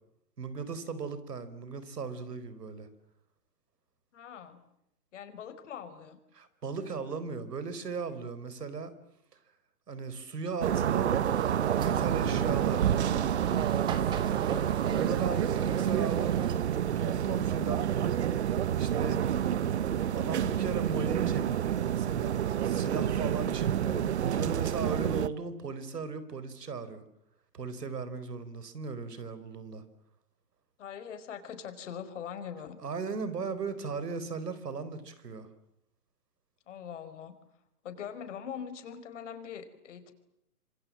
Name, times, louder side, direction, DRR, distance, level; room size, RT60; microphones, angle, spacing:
voice 1, 0.4-2.9 6.3-8.9 9.9-13.0 14.8-19.2 20.1-27.0 27.5-29.8 32.8-35.5, right 4 dB, 80° right, 14 dB, 4.7 m, -37 dB
voice 2, 4.1-4.6 5.1-6.2 15.2-15.4 30.8-32.8 36.7-37.3 37.8-40.1, left 8 dB, 50° left, 9 dB, 4.9 m, -42 dB
sound 1, 10.6-25.3, right 10 dB, 45° right, 1.0 m, -28 dB
sound 2, 11.2-16.5, right 7 dB, 10° right, 1.2 m, -40 dB
26.5 x 26.5 x 7.6 m, 0.79 s
hypercardioid pair, 155°, 47 cm